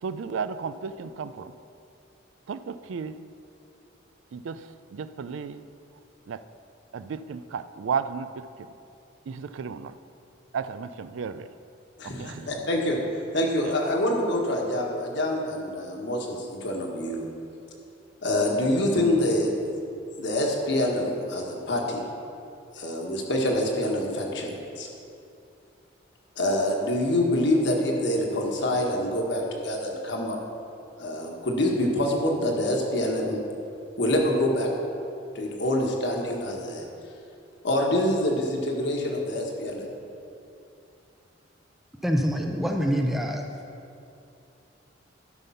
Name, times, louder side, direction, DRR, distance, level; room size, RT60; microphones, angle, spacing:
voice 1, 0.0-1.5 2.5-3.1 4.3-5.6 6.3-6.4 6.9-8.4 9.3-9.9 10.5-11.5 12.2-12.5, right 6 dB, 70° right, 13 dB, 0.4 m, -33 dB
voice 2, 12.0-13.0 13.3-17.2 18.2-19.5 20.2-22.0 22.7-24.9 26.4-30.4 31.0-33.4 34.0-34.7 35.3-36.8 37.6-39.9, left 1 dB, 60° left, 0 dB, 1.4 m, -26 dB
voice 3, 42.0-43.4, equal, ahead, 2 dB, 0.5 m, -25 dB
12.0 x 5.4 x 5.6 m, 2.6 s
head